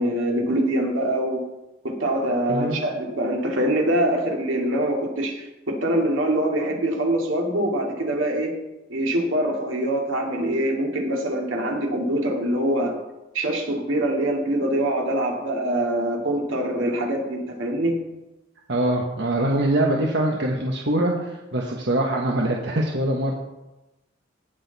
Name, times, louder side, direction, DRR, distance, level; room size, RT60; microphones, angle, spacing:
voice 1, 0.0-1.4 1.8-8.5 8.9-12.9 13.3-17.9, right 1 dB, 85° right, 1 dB, 2.3 m, -24 dB
voice 2, 18.7-23.3, right 1 dB, 60° right, 0 dB, 1.1 m, -23 dB
17.5 x 6.5 x 4.1 m, 1.0 s
head